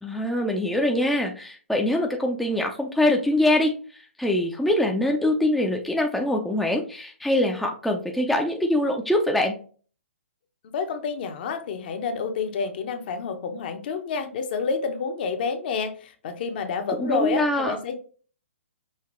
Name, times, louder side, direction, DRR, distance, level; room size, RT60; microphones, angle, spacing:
voice 1, 0.0-9.6 17.0-17.8, left 1 dB, ahead, 1 dB, 0.5 m, -23 dB
voice 2, 10.7-18.0, left 5 dB, 45° left, 7 dB, 0.8 m, -29 dB
5.7 x 2.9 x 3.1 m, 0.40 s
figure-of-eight pair, 130°, 7 cm